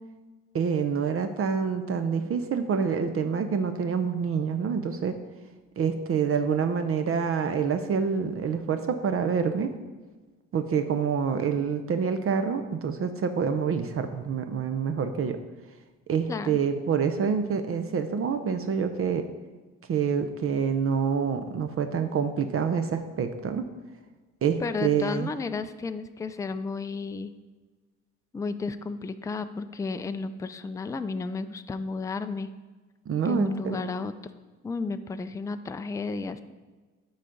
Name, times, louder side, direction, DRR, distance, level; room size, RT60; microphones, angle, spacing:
voice 1, 0.5-5.1 5.8-9.7 10.5-15.4 16.1-19.2 19.9-23.6 24.4-25.3 33.1-33.8, right 6 dB, 50° right, 9 dB, 0.6 m, -27 dB
voice 2, 16.3-16.6 24.6-27.3 28.3-32.5 33.2-34.1 34.6-36.4, left 4 dB, 10° left, 10 dB, 0.3 m, -32 dB
8.3 x 4.0 x 5.0 m, 1.3 s
cardioid pair, 90°, 30 cm